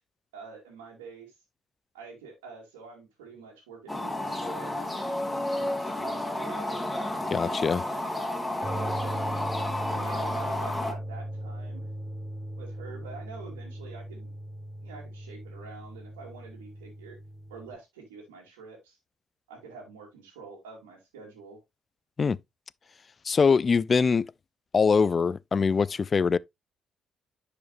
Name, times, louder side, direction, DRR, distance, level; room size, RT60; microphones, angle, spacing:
voice 1, 0.3-1.3 1.9-5.1 5.5-6.8 7.3-9.2 9.9-11.9 12.6-14.3 14.8-17.2 17.5-19.0 19.5-21.6, right 4 dB, 90° right, 2.4 m, -46 dB
sound 1, 3.9-10.9, left 1 dB, 15° left, 2.3 m, -31 dB
voice 2, 7.3-7.8 22.2-22.4 23.2-24.3 24.7-26.4, left 5 dB, 45° left, 0.4 m, -23 dB
sound 2, 8.6-17.7, right 1 dB, 30° right, 2.4 m, -38 dB
10.5 x 5.0 x 2.5 m
hypercardioid pair, 50°, 0 cm